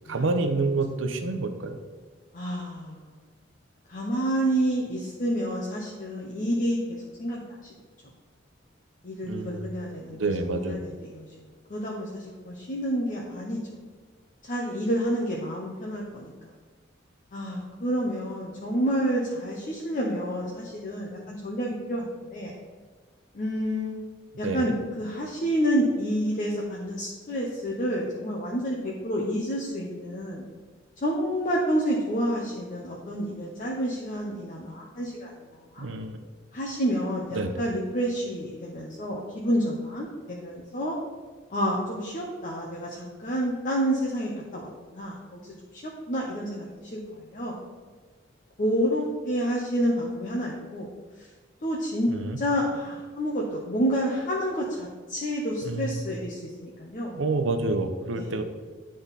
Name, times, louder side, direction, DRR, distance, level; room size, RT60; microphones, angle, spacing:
voice 1, 0.1-1.8 9.3-9.7 10.2-10.8 24.4-24.7 35.8-36.2 37.3-37.6 52.1-52.4 55.6-56.0 57.1-58.4, right 3 dB, 85° right, 7 dB, 0.7 m, -28 dB
voice 2, 2.3-3.2 3.9-7.4 9.0-11.3 11.7-13.8 14.4-16.3 17.3-22.5 23.3-23.9 24.4-30.5 31.0-35.9 36.5-41.0 41.5-47.6 48.6-50.9 51.2-51.3 51.6-57.2 58.1-58.4, equal, 40° left, -2 dB, 0.8 m, -29 dB
10.0 x 3.8 x 4.0 m, 1.5 s
head